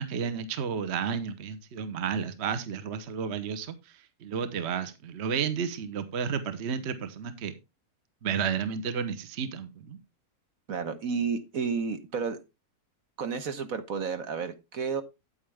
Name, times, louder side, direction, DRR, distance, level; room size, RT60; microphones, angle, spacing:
voice 1, 0.0-3.7 4.2-7.5 8.2-10.0, right 7 dB, 50° right, 1.1 m, -32 dB
voice 2, 10.7-12.4 13.2-15.0, right 5 dB, 65° right, 1.5 m, -31 dB
9.0 x 8.8 x 3.4 m
omnidirectional pair, 1.6 m